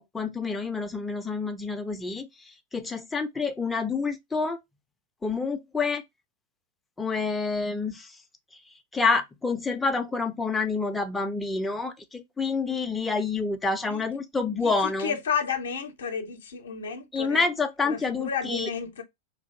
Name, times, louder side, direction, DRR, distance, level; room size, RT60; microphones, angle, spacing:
voice 1, 0.1-4.6 5.2-6.0 7.0-8.1 8.9-15.2 17.1-18.7, left 4 dB, 10° left, 0.4 m, -28 dB
voice 2, 14.6-17.5 17.8-19.0, left 6 dB, 65° left, 0.5 m, -32 dB
2.6 x 2.5 x 2.3 m
figure-of-eight pair, 90°, 0 cm